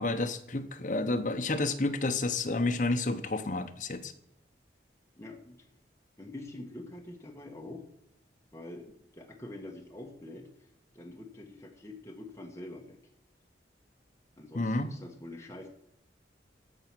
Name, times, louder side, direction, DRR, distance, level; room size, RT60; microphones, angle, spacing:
voice 1, 0.0-4.1 14.5-14.9, left 2 dB, 45° left, 7 dB, 0.8 m, -30 dB
voice 2, 5.2-5.6 6.2-7.9 8.5-8.9 9.1-10.7 10.9-13.0 14.4-15.7, left 1 dB, 15° left, 1 dB, 1.3 m, -45 dB
14.5 x 4.9 x 6.1 m, 0.75 s
head